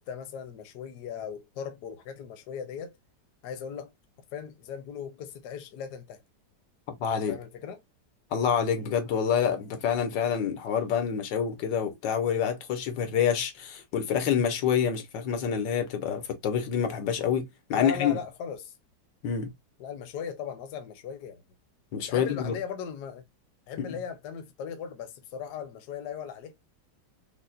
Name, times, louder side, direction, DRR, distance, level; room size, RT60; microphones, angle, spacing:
voice 1, 0.0-2.9 3.4-3.9 4.3-6.2 7.3-7.8 17.7-18.8 19.8-21.4 22.1-23.2 23.7-26.6, left 7 dB, 70° left, 1.2 m, -38 dB
voice 2, 6.9-7.4 8.3-18.2 19.2-19.5 21.9-22.5 23.8-23.9, left 8 dB, 90° left, 1.6 m, -27 dB
5.5 x 2.1 x 2.4 m
omnidirectional pair, 1.9 m